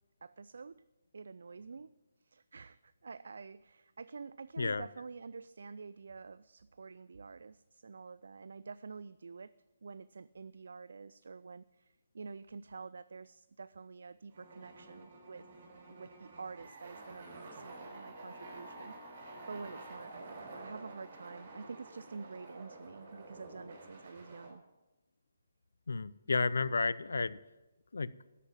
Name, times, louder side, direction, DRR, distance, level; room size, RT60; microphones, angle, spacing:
voice 1, 0.2-0.8 1.1-1.9 2.2-9.5 9.8-15.5 15.9-24.6, right 4 dB, 60° right, 16 dB, 0.3 m, -48 dB
sound 1, 14.3-24.5, right 2 dB, 45° right, 4.4 m, -50 dB
voice 2, 25.9-27.4 27.9-28.1, left 4 dB, 65° left, 18 dB, 0.5 m, -32 dB
13.0 x 8.3 x 7.2 m, 1.0 s
figure-of-eight pair, 140°, 0 cm